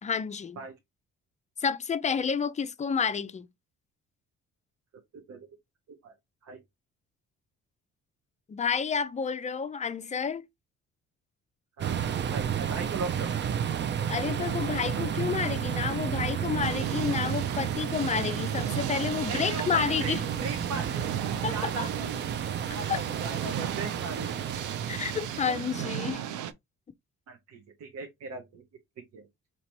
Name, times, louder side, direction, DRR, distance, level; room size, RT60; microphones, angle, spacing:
voice 1, 0.0-0.6 1.6-3.5 8.5-10.5 13.9-20.2 21.4-21.9 22.9-23.0 24.9-26.2, left 6 dB, 25° left, 0.4 m, -30 dB
voice 2, 5.1-5.5 5.9-6.1 6.4-6.6 11.8-13.3 19.3-21.0 21.5-22.1 22.7-24.3 25.5-25.6 27.3-28.6 29.1-29.2, right 4 dB, 60° right, 0.9 m, -38 dB
sound 1, 11.8-26.0, right 8 dB, 40° right, 0.5 m, -32 dB
sound 2, 16.6-26.5, right 10 dB, 85° right, 0.5 m, -36 dB
4.1 x 2.9 x 3.0 m
cardioid pair, 90°, 30 cm